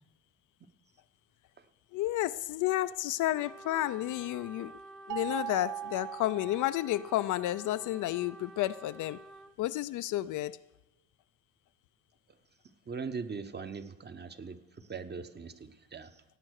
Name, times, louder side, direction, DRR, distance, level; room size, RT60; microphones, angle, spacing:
voice 1, 1.9-4.8 5.1-9.2 9.6-10.6, left 15 dB, 80° left, 13 dB, 0.5 m, -31 dB
Trumpet, 3.3-9.5, right 1 dB, ahead, 0.8 m, -50 dB
sound 1, 5.1-7.3, right 11 dB, 90° right, 0.6 m, -40 dB
voice 2, 12.9-16.2, right 5 dB, 35° right, 10 dB, 1.0 m, -41 dB
16.5 x 8.8 x 6.5 m, 0.97 s
cardioid pair, 90°, 30 cm